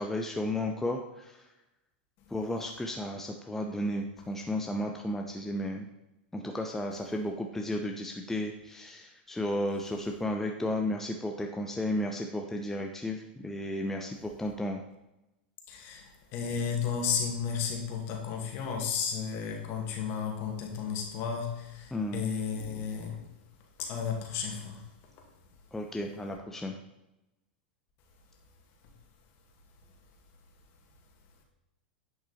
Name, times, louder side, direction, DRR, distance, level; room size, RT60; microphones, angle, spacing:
voice 1, 0.0-1.4 2.3-5.9 6.3-14.8 21.9-22.2 25.7-26.7, left 1 dB, 5° left, 2 dB, 0.8 m, -33 dB
voice 2, 15.7-23.3 23.8-24.9, left 6 dB, 45° left, 2 dB, 2.3 m, -33 dB
10.5 x 5.9 x 4.4 m, 0.94 s
hypercardioid pair, 115°, 6 cm